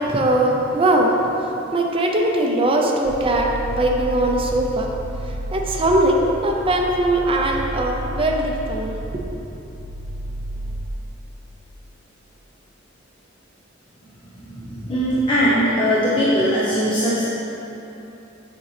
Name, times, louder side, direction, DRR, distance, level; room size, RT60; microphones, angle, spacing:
voice 1, 0.0-1.3 1.7-4.9 5.2-8.9, right 1 dB, 30° right, 0 dB, 0.6 m, -20 dB
sound 1, 3.0-10.9, right 1 dB, 85° right, 0.8 m, -31 dB
voice 2, 14.5-17.3, equal, 25° left, -9 dB, 0.8 m, -20 dB
6.7 x 5.9 x 3.3 m, 3.0 s
head